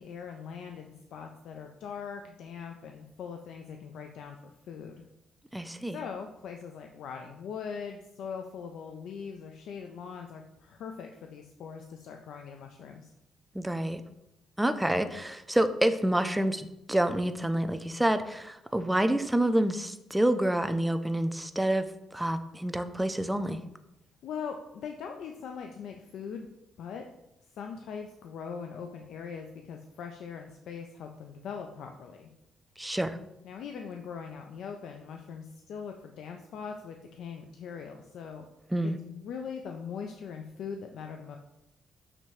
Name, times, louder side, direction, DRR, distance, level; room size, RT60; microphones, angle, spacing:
voice 1, 0.0-5.0 5.9-13.1 24.2-26.5 26.8-27.0 27.6-32.3 33.4-38.5 38.8-41.4, left 6 dB, 75° left, 4 dB, 0.3 m, -41 dB
voice 2, 5.5-6.0 13.5-14.0 14.6-21.9 22.1-23.6 32.8-33.2 38.7-39.0, right 1 dB, 5° right, 9 dB, 0.4 m, -28 dB
5.9 x 2.7 x 3.1 m, 0.86 s
cardioid pair, 90°, 0 cm